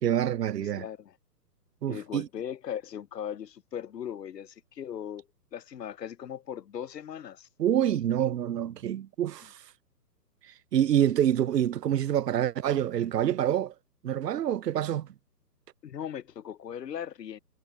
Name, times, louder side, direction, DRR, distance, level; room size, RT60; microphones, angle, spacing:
voice 1, 0.0-0.9 1.8-2.3 7.6-9.5 10.7-13.7 14.0-15.1, right 10 dB, 80° right, 0.6 m, -26 dB
voice 2, 0.6-1.1 1.9-5.3 5.5-7.5 15.8-17.4, left 9 dB, 85° left, 0.7 m, -38 dB
figure-of-eight pair, 135°, 48 cm